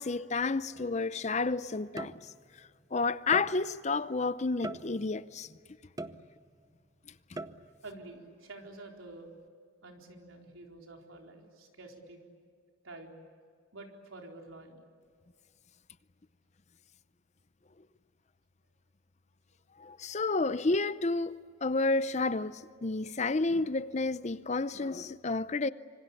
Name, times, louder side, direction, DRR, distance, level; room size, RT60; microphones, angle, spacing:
voice 1, 0.0-2.1 2.9-5.5 7.3-7.4 19.8-25.7, left 3 dB, 35° left, 0.6 m, -30 dB
sound 1, 0.7-1.0 2.0-2.6 3.3-3.9 4.6-5.3 6.0-6.7 7.4-7.9, right 2 dB, 20° right, 0.7 m, -42 dB
voice 2, 7.8-9.3 9.8-12.2 12.8-13.1 13.7-14.8, right 2 dB, 80° right, 4.3 m, -48 dB
26.5 x 25.0 x 8.4 m
head